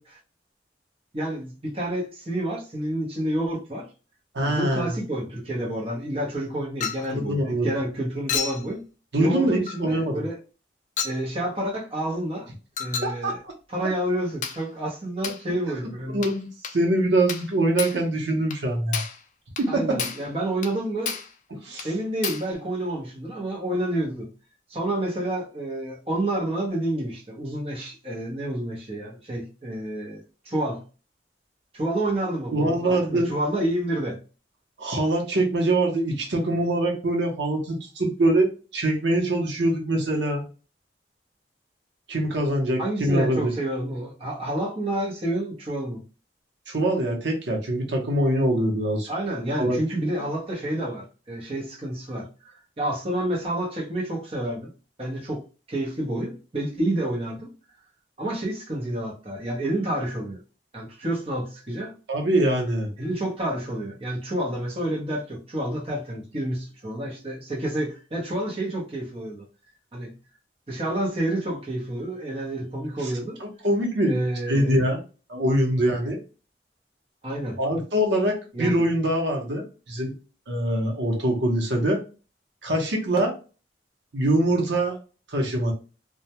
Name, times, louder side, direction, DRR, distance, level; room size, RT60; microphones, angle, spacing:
voice 1, 1.1-3.9 4.4-8.8 9.2-10.4 11.0-12.5 12.8-13.4 13.7-16.2 19.7-21.2 21.8-24.3 24.7-30.8 31.7-34.2 42.8-46.0 49.1-54.7 55.0-55.4 55.7-57.5 58.2-60.4 60.7-61.9 63.0-69.5 69.9-70.1 70.7-73.4 74.1-74.7 77.2-77.6 78.5-78.8, right 1 dB, 30° right, 0.7 m, -29 dB
voice 2, 4.3-4.9 7.1-7.7 9.1-10.2 13.0-13.5 16.1-19.0 19.6-20.0 21.6-21.9 32.5-33.3 34.8-40.4 42.1-43.5 46.7-49.1 49.6-49.8 62.1-62.9 73.0-73.1 73.4-74.1 74.5-75.0 75.3-76.2 77.6-80.1 80.5-82.0 82.6-83.3 84.1-85.0 85.3-85.7, right 1 dB, 80° right, 0.8 m, -24 dB
Chink clink, 6.8-7.1 8.3-8.7 9.7-9.8 11.0-11.2 12.8-13.2 14.4-14.6 15.2-15.4 16.2-16.4 16.6-16.8 17.3-17.5 17.8-18.0 18.5-18.6 18.9-19.2 19.6-19.7 20.0-20.3 20.6-20.8 21.1-21.3 21.8-21.9 22.2-22.5, left 7 dB, 45° left, 0.3 m, -31 dB
2.2 x 2.1 x 2.8 m
head